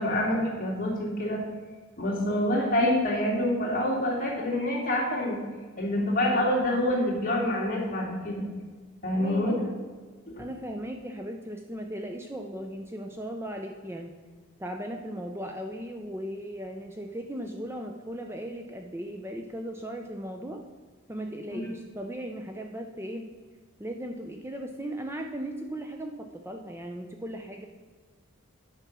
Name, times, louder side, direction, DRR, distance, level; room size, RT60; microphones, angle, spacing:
voice 1, 0.0-1.4 2.0-5.4 5.8-8.4 9.0-9.5 10.3-10.4, left 1 dB, 40° left, -4 dB, 3.0 m, -26 dB
voice 2, 9.1-9.7 10.4-14.1 14.6-20.6 21.1-23.3 23.8-27.7, equal, 10° right, 3 dB, 0.6 m, -37 dB
9.9 x 6.0 x 6.0 m, 1.5 s
head